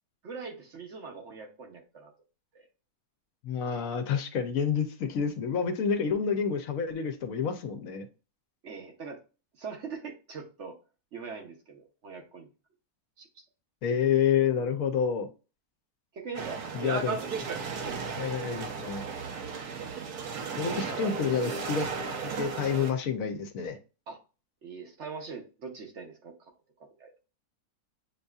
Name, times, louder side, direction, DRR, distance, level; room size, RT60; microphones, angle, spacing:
voice 1, 0.2-2.1 2.5-2.6 8.6-9.2 9.6-10.8 11.1-12.5 13.2-13.4 16.1-17.3 17.8-18.0 20.8-21.1 24.1-24.2 24.6-26.5 27.0-27.2, right 5 dB, 55° right, 3 dB, 1.0 m, -42 dB
voice 2, 3.4-8.1 13.8-15.3 16.7-17.2 18.2-19.0 20.6-23.8, left 7 dB, 70° left, 7 dB, 1.0 m, -29 dB
sound 1, 16.3-22.9, right 5 dB, 80° right, 1.3 m, -35 dB
7.7 x 2.6 x 2.3 m, 0.33 s
omnidirectional pair, 1.6 m